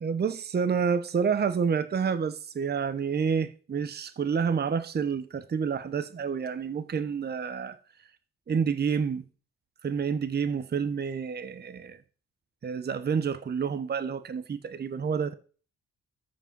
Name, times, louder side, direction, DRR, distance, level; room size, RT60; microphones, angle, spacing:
voice 1, 0.0-7.8 8.5-9.2 9.8-12.0 12.6-15.3, right 6 dB, 35° right, 0.9 m, -29 dB
13.0 x 5.2 x 5.4 m
cardioid pair, 90°, 30 cm